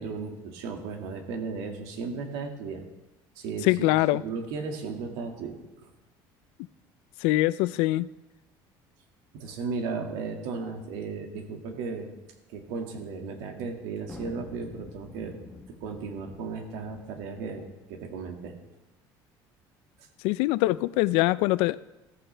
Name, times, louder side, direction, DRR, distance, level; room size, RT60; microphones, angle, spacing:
voice 1, 0.0-2.8 3.4-5.9 9.3-12.1 12.5-15.4 15.7-18.6, right 4 dB, 85° right, 3 dB, 2.1 m, -35 dB
voice 2, 3.6-4.2 7.2-8.1 20.2-21.8, left 18 dB, 85° left, 18 dB, 0.4 m, -23 dB
sound 1, 14.0-17.7, left 2 dB, 5° left, 1.1 m, -47 dB
14.5 x 14.0 x 3.4 m, 1.0 s
cardioid pair, 175°, 9 cm